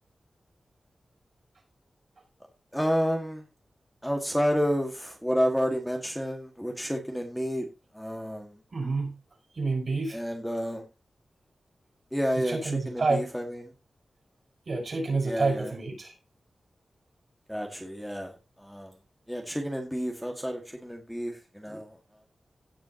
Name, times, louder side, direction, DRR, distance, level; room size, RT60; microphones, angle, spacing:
voice 1, 2.7-3.4 4.0-7.7 7.9-8.6 10.1-10.8 12.1-13.7 15.2-15.7 17.5-18.9 19.3-22.0, equal, ahead, 2 dB, 1.9 m, -30 dB
voice 2, 8.7-9.2 9.5-10.2 12.4-13.2 14.7-16.1, right 3 dB, 55° right, 1 dB, 5.7 m, -28 dB
17.5 x 6.1 x 2.9 m, 0.28 s
wide cardioid pair, 120°, 0 cm